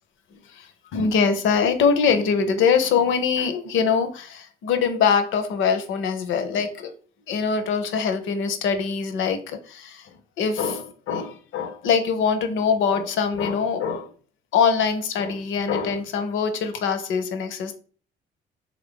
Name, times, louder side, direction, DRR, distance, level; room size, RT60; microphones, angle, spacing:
voice 1, 0.5-6.9 7.3-14.1 14.5-17.8, left 6 dB, 75° left, 0.6 m, -23 dB
3.2 x 2.4 x 3.6 m
cardioid pair, 90°, 20 cm